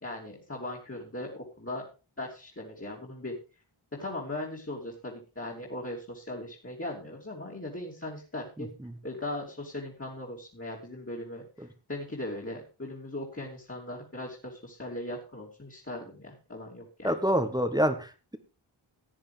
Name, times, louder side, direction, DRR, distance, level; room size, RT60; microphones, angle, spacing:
voice 1, 0.0-1.9 2.2-3.3 4.0-8.7 9.0-11.5 11.9-17.1, left 1 dB, 25° left, -3 dB, 3.2 m, -38 dB
voice 2, 17.0-18.4, equal, 10° right, 7 dB, 1.4 m, -27 dB
16.5 x 9.9 x 3.5 m, 0.32 s
wide cardioid pair, 80°, 49 cm